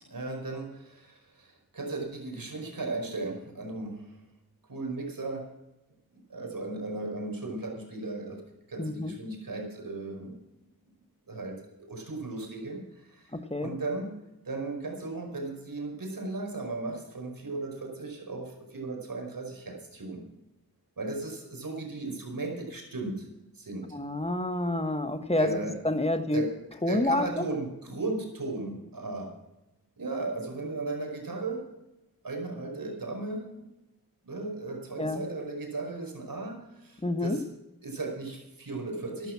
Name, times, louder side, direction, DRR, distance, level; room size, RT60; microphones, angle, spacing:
voice 1, 0.1-4.2 4.7-5.4 6.3-8.4 8.7-10.4 11.3-11.6 11.9-14.1 14.4-20.2 21.0-23.3 23.5-24.0 25.4-25.8 26.3-26.5 26.9-29.3 30.0-31.6 32.2-33.5 34.2-37.4 37.8-39.3, right 3 dB, 60° right, 2 dB, 5.1 m, -36 dB
voice 2, 8.8-9.1 13.3-13.7 23.9-25.6 25.8-26.4 26.8-27.5 35.0-35.2 37.0-37.4, left 2 dB, 15° left, 9 dB, 1.5 m, -28 dB
13.5 x 12.0 x 6.1 m, 0.96 s
cardioid pair, 45°, 38 cm